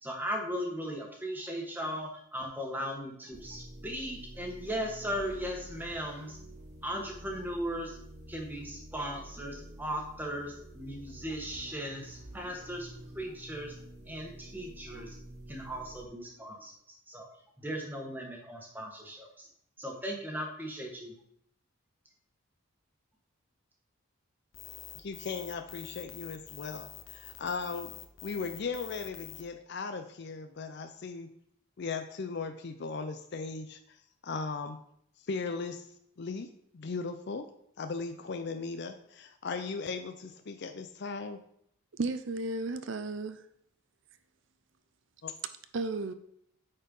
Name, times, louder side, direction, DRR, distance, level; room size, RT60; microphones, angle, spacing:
voice 1, 0.0-6.4 6.8-8.0 8.3-13.8 14.1-15.2 15.5-17.3 17.6-19.5 19.8-21.1, equal, 10° right, 1.3 m, -37 dB
sound 1, 3.3-16.1, right 1 dB, 35° right, 1.5 m, -49 dB
sound 2, 24.5-29.4, left 11 dB, 70° left, 0.9 m, -47 dB
voice 2, 24.9-28.0 28.2-31.3 31.8-34.8 35.3-36.5 36.7-37.5 37.8-41.4 45.2-45.3, left 4 dB, 50° left, 0.5 m, -37 dB
voice 3, 41.9-43.5 45.7-46.1, right 3 dB, 55° right, 0.5 m, -34 dB
8.7 x 4.4 x 5.3 m
head